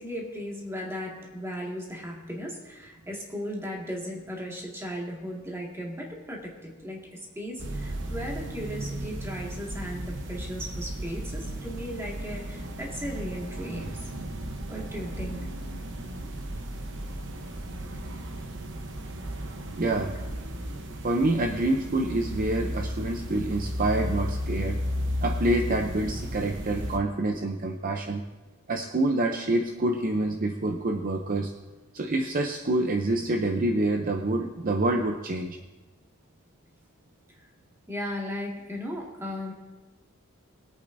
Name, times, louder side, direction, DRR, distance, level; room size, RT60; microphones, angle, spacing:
voice 1, 0.0-14.1 14.7-15.5 37.3-37.5 37.9-39.5, equal, 10° right, -2 dB, 1.9 m, -36 dB
sound 1, 7.6-27.0, equal, 60° right, 1.0 m, -34 dB
voice 2, 19.8-20.1 21.0-24.8 25.2-28.2 28.7-31.5 31.9-35.6, right 2 dB, 40° right, 4 dB, 0.6 m, -27 dB
22.0 x 8.5 x 2.7 m, 1.2 s
head